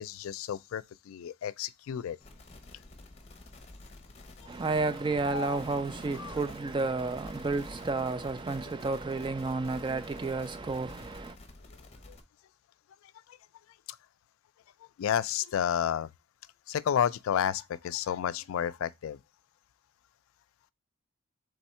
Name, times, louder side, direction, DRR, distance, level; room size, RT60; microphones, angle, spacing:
voice 1, 0.0-2.2 5.2-5.6 6.2-6.3 12.1-12.2 15.0-16.1 16.7-19.2, left 9 dB, 70° left, 0.3 m, -31 dB
sound 1, 2.2-12.2, left 2 dB, 30° left, 0.7 m, -51 dB
voice 2, 4.5-11.4, right 3 dB, 20° right, 0.3 m, -31 dB
3.5 x 3.5 x 4.2 m
head